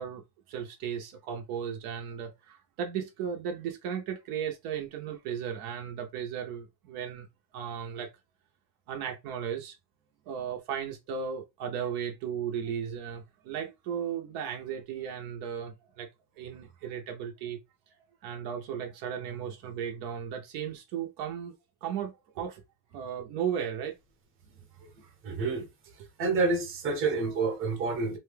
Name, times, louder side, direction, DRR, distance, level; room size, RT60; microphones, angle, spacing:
voice 1, 0.0-7.3 7.5-8.1 8.9-9.8 10.3-16.1 16.4-17.6 18.2-21.5 21.8-22.6 22.9-24.0 25.0-25.1 27.3-27.5, right 8 dB, 75° right, 0.8 m, -35 dB
voice 2, 25.2-25.7 26.2-28.2, right 3 dB, 35° right, 0.9 m, -28 dB
2.7 x 2.2 x 3.3 m
cardioid pair, 170°, 37 cm